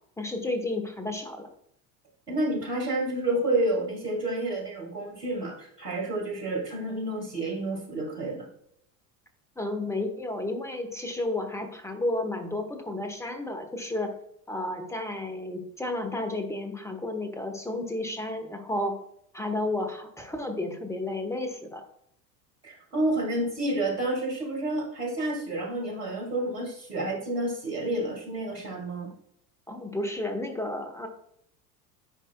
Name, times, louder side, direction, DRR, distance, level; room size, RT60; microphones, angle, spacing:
voice 1, 0.2-1.5 9.6-14.1 14.5-18.9 19.3-21.8 29.7-31.1, left 2 dB, 5° left, 5 dB, 1.1 m, -32 dB
voice 2, 2.3-8.5 22.6-29.1, right 1 dB, 90° right, -2 dB, 2.0 m, -29 dB
10.0 x 4.9 x 2.2 m, 0.70 s
figure-of-eight pair, 70°, 47 cm